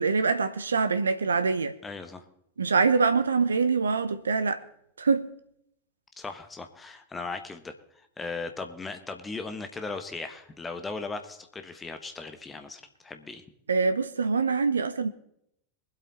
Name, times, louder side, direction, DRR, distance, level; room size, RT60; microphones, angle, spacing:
voice 1, 0.0-1.7 2.6-4.6 5.0-5.3 13.7-15.1, right 4 dB, 75° right, 0.7 m, -24 dB
voice 2, 1.8-2.2 6.2-13.4, left 3 dB, 15° left, 1.5 m, -38 dB
22.5 x 8.2 x 4.3 m
figure-of-eight pair, 90°, 0 cm